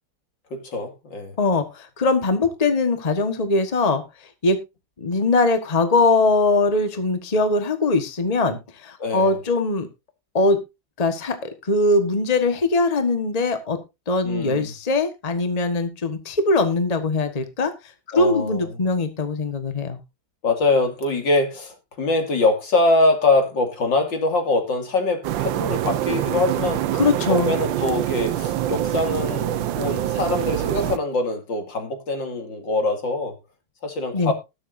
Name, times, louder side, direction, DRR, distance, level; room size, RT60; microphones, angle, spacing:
voice 1, 0.5-1.3 9.0-9.4 14.2-14.7 18.1-18.7 20.4-26.8 27.3-33.3 33.8-34.3, left 2 dB, 70° left, 3.1 m, -23 dB
voice 2, 1.4-4.0 4.4-4.6 5.0-9.9 10.3-10.6 11.0-13.8 14.1-17.7 18.1-20.0 26.9-27.5 34.1-34.3, left 3 dB, 20° left, 1.3 m, -21 dB
sound 1, 25.2-31.0, right 12 dB, 75° right, 1.4 m, -25 dB
20.0 x 7.3 x 2.7 m
omnidirectional pair, 2.1 m